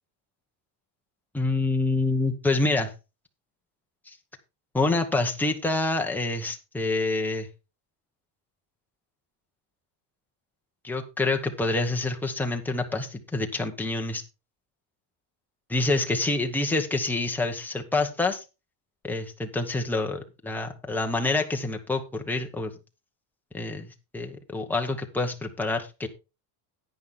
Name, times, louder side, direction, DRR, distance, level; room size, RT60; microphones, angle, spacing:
voice 1, 1.3-2.9 4.1-4.2 4.7-7.5 10.8-14.2 15.7-18.4 19.0-22.7 23.5-26.1, left 2 dB, 5° left, 2 dB, 0.9 m, -27 dB
10.5 x 9.4 x 3.7 m, 0.28 s
cardioid pair, 175°, 49 cm